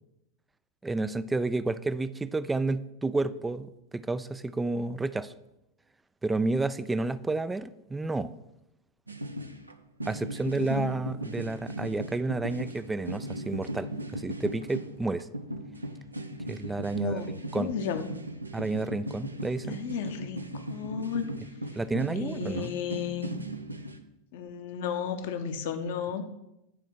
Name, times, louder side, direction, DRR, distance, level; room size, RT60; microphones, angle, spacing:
voice 1, 0.8-5.3 6.2-8.3 10.1-15.3 16.5-17.7 18.5-19.8 21.8-22.7, right 3 dB, 10° right, 15 dB, 0.4 m, -31 dB
sound 1, 9.1-9.7 10.0-24.0, right 1 dB, 85° right, 0.7 m, -38 dB
voice 2, 10.5-10.9 16.9-18.1 19.7-21.3 22.2-23.3 24.3-26.2, left 7 dB, 55° left, 8 dB, 0.8 m, -33 dB
9.4 x 4.4 x 6.1 m, 0.87 s
figure-of-eight pair, 90°, 0 cm